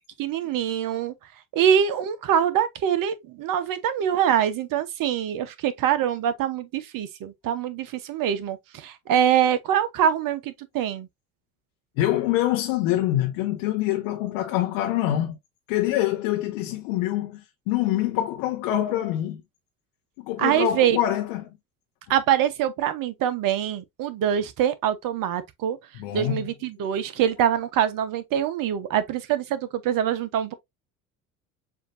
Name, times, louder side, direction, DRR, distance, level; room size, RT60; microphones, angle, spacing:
voice 1, 0.2-1.1 1.5-11.1 20.4-21.0 22.1-25.8 26.1-30.5, right 9 dB, 50° right, 1.0 m, -24 dB
voice 2, 12.0-15.4 15.7-19.4 20.2-21.5 25.9-26.5, left 13 dB, 65° left, 0.9 m, -25 dB
6.8 x 2.8 x 2.6 m
hypercardioid pair, 60°, 42 cm